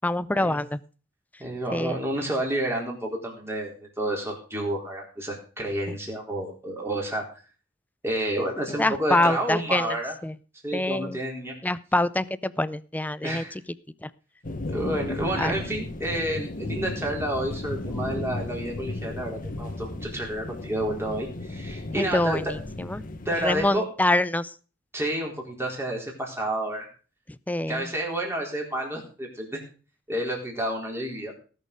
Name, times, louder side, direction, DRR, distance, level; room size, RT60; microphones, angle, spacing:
voice 1, 0.0-0.8 1.7-1.9 8.8-10.0 10.2-10.3 10.7-11.2 11.6-13.4 14.0-14.1 15.4-15.6 21.9-23.0 23.4-24.5 27.5-27.9, left 1 dB, 10° left, 16 dB, 0.5 m, -25 dB
voice 2, 1.4-7.2 8.0-10.2 10.6-11.5 13.2-13.6 14.7-22.4 23.3-23.9 24.9-26.9 27.7-29.6 30.1-31.3, right 1 dB, 15° right, -1 dB, 3.9 m, -30 dB
sound 1, 14.4-23.7, left 2 dB, 45° left, 1.2 m, -35 dB
18.5 x 6.6 x 5.1 m, 0.37 s
head